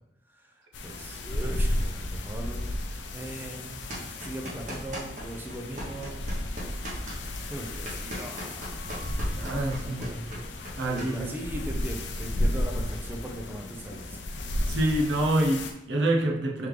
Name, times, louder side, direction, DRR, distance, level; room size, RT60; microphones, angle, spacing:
voice 1, 0.3-2.7 3.1-3.8 4.2-6.2 7.5-8.9 9.8-10.2 10.9-14.2, right 1 dB, 10° right, 2 dB, 0.4 m, -39 dB
sound 1, 0.7-15.7, left 1 dB, 80° left, 0.5 m, -33 dB
sound 2, 3.9-5.2 5.5-11.1, equal, 40° right, 1.0 m, -38 dB
voice 2, 9.3-10.2 10.8-11.3 14.7-16.7, right 1 dB, 80° right, 0 dB, 0.6 m, -27 dB
3.6 x 3.3 x 3.2 m, 0.85 s
head